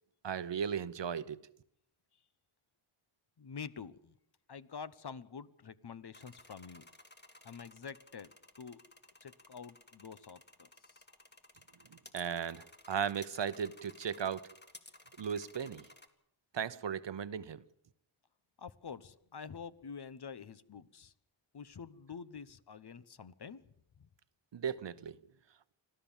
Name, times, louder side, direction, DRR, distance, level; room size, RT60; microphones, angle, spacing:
voice 1, 0.2-1.4 12.1-14.5 15.2-15.8 16.5-17.6 24.5-25.2, right 7 dB, 60° right, 0.9 m, -36 dB
voice 2, 3.4-4.1 4.5-6.9 7.4-8.3 8.6-8.8 9.2-11.0 18.6-21.1 21.5-23.6 24.0-24.1, left 6 dB, 50° left, 1.0 m, -47 dB
sound 1, 6.1-16.1, left 2 dB, 20° left, 2.1 m, -57 dB
25.5 x 15.0 x 7.3 m
wide cardioid pair, 75°, 50 cm